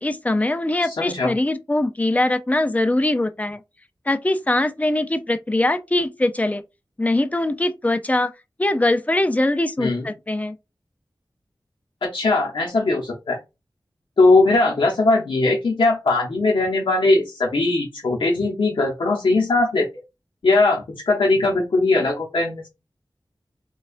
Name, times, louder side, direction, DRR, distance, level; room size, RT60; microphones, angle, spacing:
voice 1, 0.0-3.6 4.1-6.6 7.0-8.3 8.6-10.6, left 1 dB, 20° left, 0.4 m, -22 dB
voice 2, 0.8-1.3 9.8-10.0 12.0-13.4 14.2-19.9 20.4-22.7, left 2 dB, 85° left, 0.8 m, -20 dB
4.1 x 2.3 x 2.5 m
wide cardioid pair, 80°, 8 cm